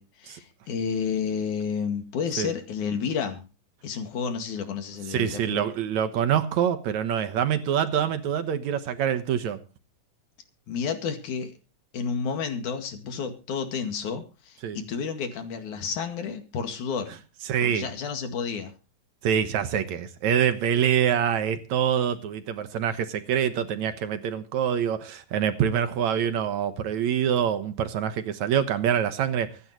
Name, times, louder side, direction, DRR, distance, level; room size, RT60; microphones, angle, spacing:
voice 1, 0.0-3.4 3.8-5.6 10.7-11.5 11.9-17.1 17.6-18.7, left 6 dB, 70° left, 6 dB, 3.4 m, -31 dB
voice 2, 5.1-9.6 14.6-14.8 17.5-17.9 19.2-29.5, right 9 dB, 65° right, 10 dB, 2.3 m, -25 dB
24.5 x 11.0 x 3.1 m, 0.31 s
omnidirectional pair, 3.8 m